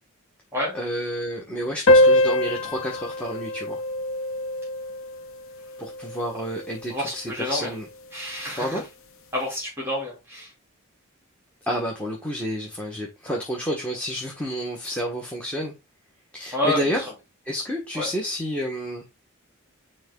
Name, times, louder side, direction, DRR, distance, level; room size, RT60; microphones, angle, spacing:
voice 1, 0.7-3.8 5.8-7.9 8.5-8.8 11.7-15.7 16.3-17.0 17.4-19.0, equal, 5° left, 1.2 m, -30 dB
sound 1, 1.9-6.8, left 1 dB, 65° left, 0.9 m, -23 dB
voice 2, 6.9-7.7 8.1-8.8 9.3-10.5 16.5-17.0 17.9-18.1, left 1 dB, 10° right, 2.8 m, -28 dB
9.8 x 3.3 x 3.7 m
head